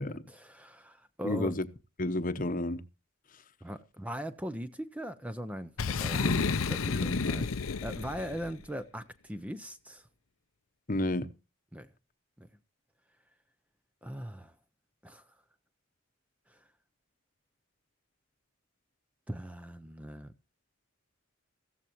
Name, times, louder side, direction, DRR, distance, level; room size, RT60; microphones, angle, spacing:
voice 1, 0.0-1.5 3.6-10.1 11.7-11.9 12.4-12.5 14.0-14.5 15.0-15.2 16.5-16.6 19.3-20.3, equal, 5° right, 0.6 m, -40 dB
voice 2, 1.2-1.7 2.0-2.8 6.2-6.5 6.8-7.2 10.9-11.3, left 1 dB, 40° left, 0.9 m, -31 dB
Boom, 5.8-8.5, left 5 dB, 80° left, 0.7 m, -31 dB
15.0 x 14.5 x 3.0 m
head